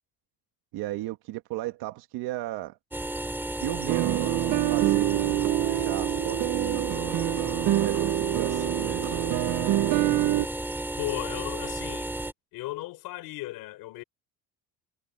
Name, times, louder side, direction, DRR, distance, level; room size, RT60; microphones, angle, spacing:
voice 1, 0.7-2.8 3.6-6.9 7.7-9.0, right 16 dB, 85° right, 1.9 m, -35 dB
sound 1, 2.9-12.3, right 1 dB, 5° right, 4.6 m, -33 dB
sound 2, 3.9-10.5, right 17 dB, 50° right, 0.4 m, -26 dB
voice 2, 11.0-12.1 12.5-14.0, left 18 dB, 75° left, 4.8 m, -35 dB
cardioid pair, 155°, 36 cm